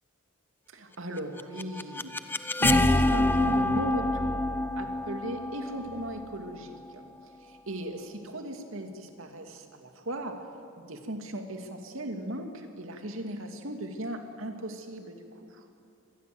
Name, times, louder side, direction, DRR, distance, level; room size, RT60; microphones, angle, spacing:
voice 1, 0.7-7.1 7.4-10.4 10.8-15.2 15.5-15.6, right 1 dB, 75° right, 5 dB, 2.6 m, -37 dB
sound 1, 1.2-7.0, left 1 dB, 10° left, 0.7 m, -27 dB
24.5 x 19.5 x 7.9 m, 2.5 s
head